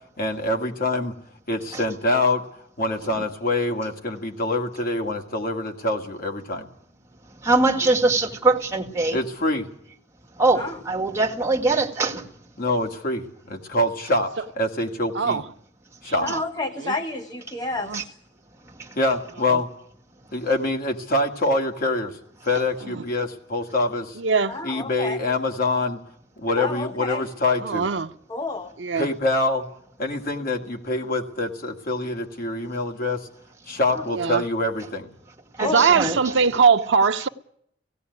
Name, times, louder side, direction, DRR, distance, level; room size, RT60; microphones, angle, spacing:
voice 1, 0.2-1.1 1.5-2.5 2.8-6.7 9.1-9.7 12.6-15.4 16.0-16.3 19.0-19.7 20.3-22.2 22.4-24.2 24.6-26.0 26.4-27.9 29.0-29.7 30.0-33.3 33.7-35.1, left 2 dB, 55° left, 2.1 m, -25 dB
voice 2, 7.4-9.2 10.4-12.2 17.9-18.0 35.6-36.2, right 3 dB, 15° right, 2.0 m, -22 dB
voice 3, 16.2-18.1 24.5-25.2 26.6-27.2 28.3-28.7 33.9-34.0 35.6-35.8, left 2 dB, 25° left, 1.0 m, -30 dB
voice 4, 24.2-24.6 27.6-28.1 28.8-29.1 34.1-34.4 35.6-37.3, right 5 dB, 80° right, 0.7 m, -21 dB
17.5 x 16.0 x 9.4 m
head